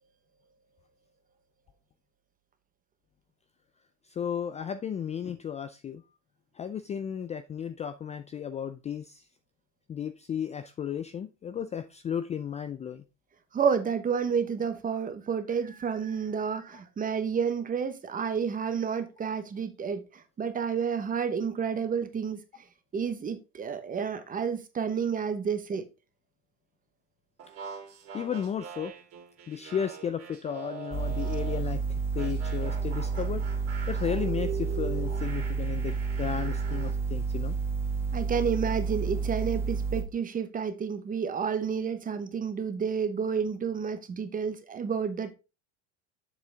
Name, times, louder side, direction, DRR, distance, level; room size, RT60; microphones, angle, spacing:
voice 1, 4.1-6.0 6.6-9.2 9.9-13.0 28.1-28.9 29.5-31.8 32.2-33.4 33.9-37.6, left 8 dB, 20° left, 0.4 m, -34 dB
voice 2, 13.5-20.0 20.4-22.4 22.9-25.9 38.1-45.3, right 6 dB, 25° right, 1.0 m, -30 dB
sound 1, 27.4-31.7 32.2-37.0, right 7 dB, 40° right, 3.0 m, -42 dB
sound 2, 30.9-40.0, right 5 dB, 5° right, 1.4 m, -30 dB
7.5 x 6.1 x 3.4 m
supercardioid pair, 130°, 34 cm